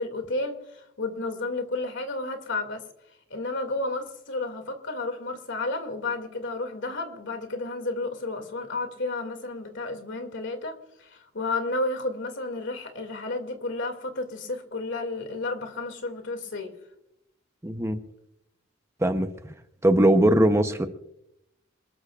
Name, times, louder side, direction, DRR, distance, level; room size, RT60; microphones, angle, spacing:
voice 1, 0.0-2.8 3.3-16.7, left 2 dB, 65° left, 7 dB, 2.4 m, -32 dB
voice 2, 17.6-18.0 19.0-19.3 19.8-20.9, right 1 dB, 15° right, 7 dB, 0.8 m, -20 dB
27.5 x 13.5 x 2.5 m, 0.81 s
head